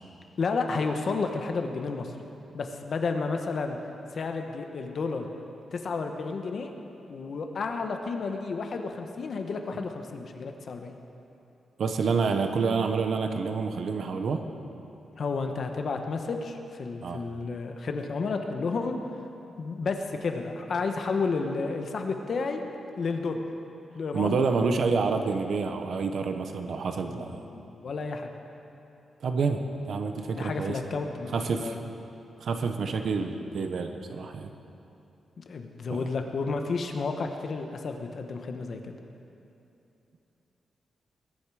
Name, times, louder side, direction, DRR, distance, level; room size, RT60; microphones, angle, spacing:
voice 1, 0.4-2.1 2.5-3.8 4.1-5.3 5.7-6.7 7.1-10.9 15.2-19.0 19.6-22.6 23.0-23.4 23.9-24.4 27.0-28.3 30.3-31.7 35.4-38.9, left 4 dB, 45° left, 5 dB, 1.1 m, -31 dB
voice 2, 11.8-14.5 17.0-17.2 24.1-27.4 29.2-30.9 31.3-31.8 32.4-34.5 35.9-36.1, right 4 dB, 55° right, 6 dB, 1.0 m, -28 dB
21.5 x 10.5 x 4.9 m, 2.8 s
wide cardioid pair, 170°, 0 cm